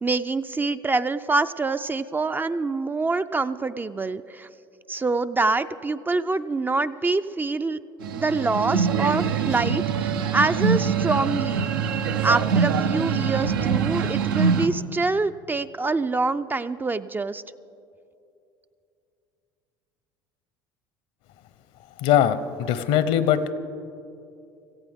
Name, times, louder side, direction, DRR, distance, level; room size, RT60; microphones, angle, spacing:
voice 1, 0.0-4.5 4.9-7.8 8.1-11.7 12.2-17.4, right 3 dB, 15° right, 11 dB, 0.4 m, -25 dB
sound 1, 8.0-14.7, right 6 dB, 85° right, 0.7 m, -24 dB
voice 2, 22.0-23.5, left 10 dB, 65° left, 13 dB, 0.8 m, -21 dB
17.5 x 15.0 x 3.6 m, 2.6 s
hypercardioid pair, 80°, 11 cm